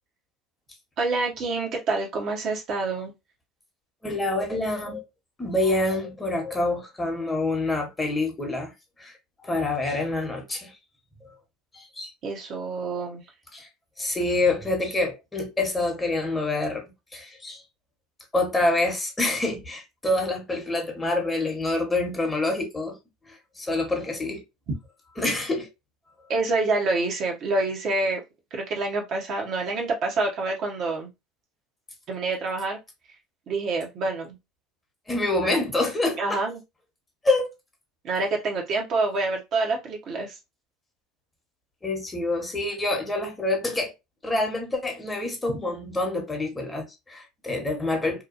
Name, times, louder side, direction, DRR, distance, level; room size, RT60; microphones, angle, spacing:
voice 1, 1.0-3.1 12.2-13.2 26.3-28.2 28.5-31.1 32.1-32.8 33.5-34.4 35.4-35.5 36.2-36.6 38.0-40.3, right 3 dB, 50° right, 0.9 m, -27 dB
voice 2, 4.0-5.0 5.4-8.7 9.0-9.1 9.4-10.7 11.7-12.1 13.5-13.7 14.0-16.8 17.1-17.6 18.3-23.0 23.3-24.4 25.2-25.7 35.1-36.4 37.2-37.5 41.8-43.9 44.2-48.2, left 2 dB, 20° left, 1.1 m, -26 dB
2.9 x 2.2 x 2.5 m
hypercardioid pair, 75°, 0 cm